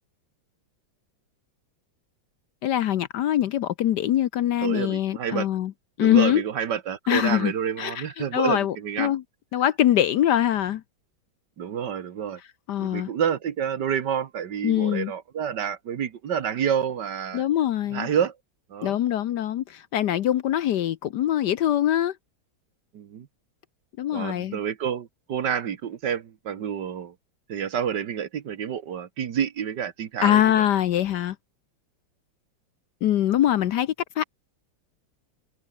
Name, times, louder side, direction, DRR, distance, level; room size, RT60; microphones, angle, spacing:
voice 1, 2.6-5.7 6.0-6.4 7.1-7.5 7.8-8.0 8.3-9.2 9.5-10.8 12.7-13.1 14.6-15.1 17.3-18.1 18.8-22.1 24.0-24.6 30.2-31.4 33.0-34.2, left 11 dB, 65° left, 1.2 m, -23 dB
voice 2, 4.6-5.5 6.0-9.1 11.6-12.4 12.8-17.5 17.9-18.3 18.7-19.0 22.9-23.3 24.1-27.1 27.5-30.7, right 8 dB, 60° right, 1.8 m, -28 dB
omnidirectional pair, 2.2 m